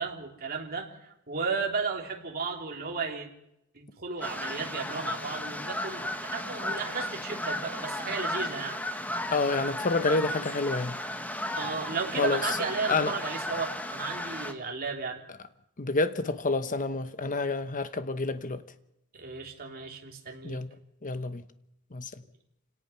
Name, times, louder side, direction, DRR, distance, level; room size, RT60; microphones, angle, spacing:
voice 1, 0.0-3.3 3.7-8.8 11.5-15.2 19.1-20.6, right 4 dB, 45° right, 3.1 m, -34 dB
sound 1, 4.2-14.5, left 1 dB, 5° left, 1.4 m, -35 dB
voice 2, 9.3-11.0 12.2-12.4 12.9-13.1 15.8-18.6 20.4-20.7 21.0-21.4 21.9-22.1, left 3 dB, 35° left, 1.0 m, -28 dB
27.5 x 17.5 x 5.8 m
head